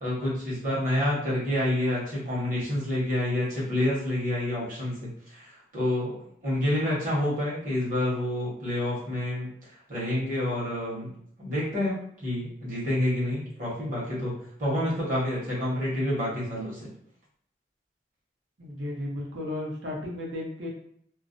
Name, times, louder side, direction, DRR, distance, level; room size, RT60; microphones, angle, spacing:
voice 1, 0.0-6.1 6.4-9.5 9.9-11.1 11.4-14.3 14.6-16.9, left 1 dB, 45° right, -7 dB, 1.0 m, -28 dB
voice 2, 18.6-20.7, left 1 dB, 80° right, -3 dB, 0.7 m, -34 dB
2.4 x 2.0 x 2.5 m, 0.65 s
head